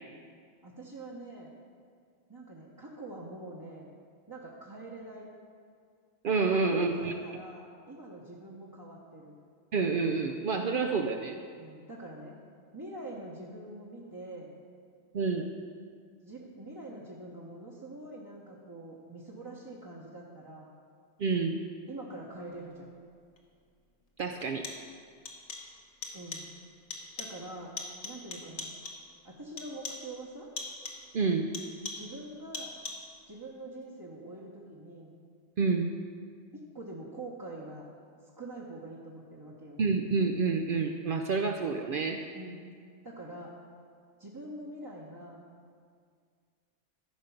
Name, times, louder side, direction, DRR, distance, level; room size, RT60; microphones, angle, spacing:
voice 1, 0.6-1.5 2.3-3.9 4.3-5.3 6.5-9.3 11.5-12.4 12.7-14.5 16.2-20.7 21.9-22.9 26.1-26.5 27.2-27.7 28.0-28.7 29.2-30.5 32.0-32.7 33.3-35.1 36.5-37.9 38.4-39.8 42.3-42.6 43.0-43.5 44.2-45.4, right 2 dB, 20° right, -5 dB, 0.9 m, -44 dB
voice 2, 6.2-7.1 9.7-11.4 15.1-15.5 21.2-21.6 24.2-24.6 31.1-31.5 35.6-35.9 39.8-42.2, right 4 dB, 60° right, 3 dB, 0.6 m, -28 dB
sound 1, 23.4-23.5 24.4-25.0 25.3-25.8 26.0-26.6 26.9-27.5 27.8-29.1 29.6-30.2 30.6-31.1 31.5-32.2 32.5-33.2, left 3 dB, 70° left, 1.4 m, -42 dB
13.5 x 5.1 x 5.8 m, 2.1 s
omnidirectional pair, 1.2 m